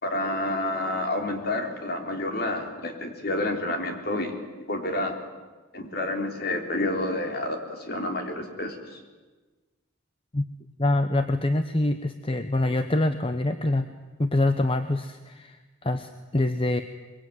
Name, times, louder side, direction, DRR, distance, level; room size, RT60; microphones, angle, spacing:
voice 1, 0.0-4.3 4.7-5.2 5.7-8.8, left 1 dB, 50° left, 4 dB, 3.7 m, -29 dB
voice 2, 10.8-13.9 14.2-16.8, left 2 dB, 25° left, 9 dB, 0.9 m, -25 dB
23.5 x 23.0 x 9.4 m, 1.3 s
head